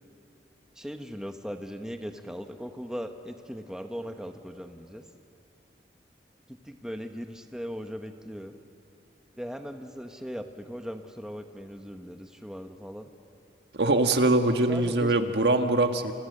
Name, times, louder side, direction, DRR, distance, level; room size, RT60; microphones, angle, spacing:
voice 1, 0.7-5.0 6.5-8.6 9.4-13.1 14.7-15.3, equal, 5° right, 5 dB, 1.1 m, -38 dB
voice 2, 13.7-16.1, right 2 dB, 75° right, 6 dB, 1.5 m, -23 dB
28.5 x 28.0 x 6.7 m, 2.7 s
head